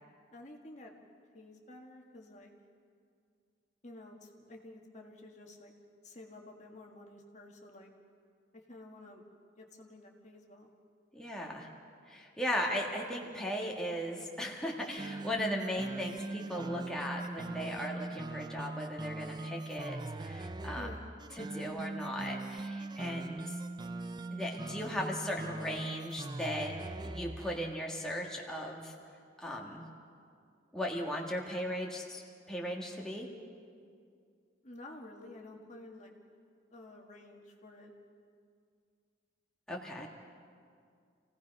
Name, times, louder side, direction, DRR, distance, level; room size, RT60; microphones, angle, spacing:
voice 1, 0.3-0.9 1.3-2.5 3.8-5.7 6.0-7.9 8.5-9.2 9.6-10.7 20.8-21.1 34.6-36.1 36.7-37.9 40.0-40.1, left 2 dB, 40° left, 1 dB, 1.7 m, -51 dB
voice 2, 11.1-11.7 12.1-20.9 21.4-23.6 24.3-26.7 27.0-28.9 29.4-29.8 30.7-32.2 32.5-33.3 39.7-40.1, equal, 5° left, -2 dB, 1.7 m, -37 dB
sound 1, 14.8-27.6, right 2 dB, 25° right, 0.4 m, -41 dB
28.0 x 17.0 x 5.4 m, 2.3 s
head